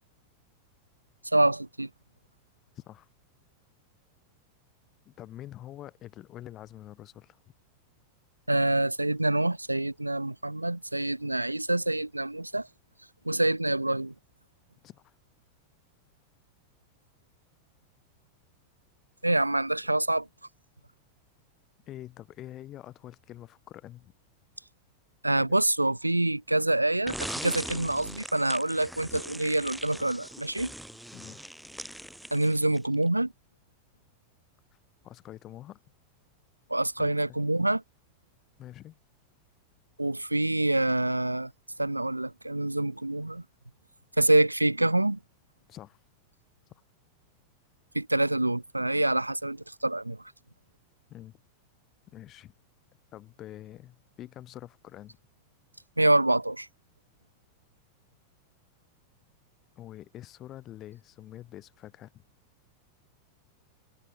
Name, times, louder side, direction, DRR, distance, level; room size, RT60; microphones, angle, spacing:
voice 1, 1.3-1.9 8.5-12.7 13.3-14.1 19.2-20.3 25.2-30.7 32.3-33.3 36.7-37.8 40.0-41.5 41.8-43.4 44.2-45.2 47.9-50.2 56.0-56.7, right 1 dB, 85° right, 0.3 m, -26 dB
voice 2, 2.7-3.1 5.1-7.4 14.8-15.1 21.9-24.1 25.3-25.5 31.1-31.5 35.0-35.8 37.0-37.1 38.6-39.0 45.7-46.0 51.1-51.4 52.1-52.5 53.1-55.2 59.8-62.2, left 13 dB, 30° left, 7.7 m, -46 dB
sound 1, 27.1-32.9, right 1 dB, ahead, 0.9 m, -40 dB
open air
figure-of-eight pair, 90°, 0 cm